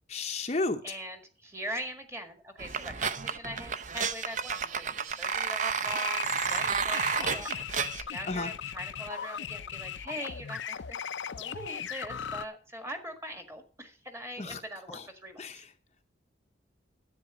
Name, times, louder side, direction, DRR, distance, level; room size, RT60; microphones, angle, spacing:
voice 1, 0.1-0.8 8.3-8.5 14.4-14.6 14.9-15.0 15.4-15.7, left 3 dB, 35° left, 6 dB, 0.7 m, -32 dB
voice 2, 0.8-11.0 11.3-15.6, right 1 dB, 15° right, 6 dB, 1.7 m, -42 dB
sound 1, 2.6-8.0, right 6 dB, 40° right, 0.7 m, -31 dB
sound 2, 5.9-12.5, left 8 dB, 80° left, 0.5 m, -38 dB
10.5 x 8.5 x 6.1 m, 0.38 s
head